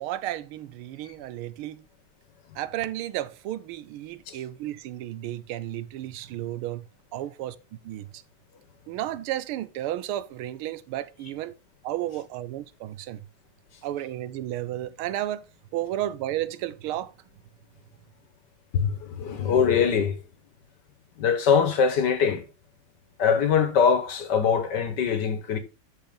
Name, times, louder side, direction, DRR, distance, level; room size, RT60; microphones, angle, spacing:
voice 1, 0.0-1.8 2.5-6.8 7.1-7.6 7.8-8.2 8.9-11.5 11.8-13.2 13.8-15.4 15.7-17.1, right 13 dB, 90° right, 1.6 m, -33 dB
voice 2, 18.7-20.1 21.2-22.4 23.2-25.6, left 6 dB, 60° left, 1.6 m, -22 dB
11.0 x 4.4 x 3.6 m
omnidirectional pair, 2.3 m